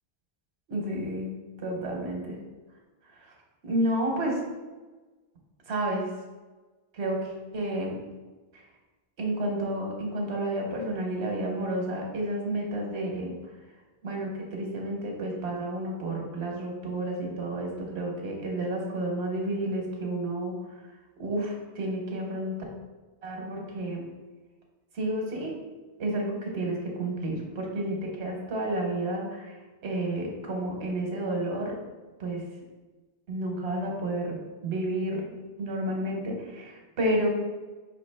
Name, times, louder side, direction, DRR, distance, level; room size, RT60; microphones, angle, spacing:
voice 1, 0.7-1.3 1.6-2.4 3.6-4.4 5.7-6.1 6.9-8.0 8.5-8.6 9.2-13.4 14.0-20.6 21.2-22.6 23.2-24.1 24.9-25.6 26.0-29.5 29.8-31.8 32.2-32.5 33.3-37.3, right 1 dB, 85° right, 0 dB, 1.2 m, -31 dB
5.1 x 2.8 x 3.3 m, 1.2 s
omnidirectional pair, 1.1 m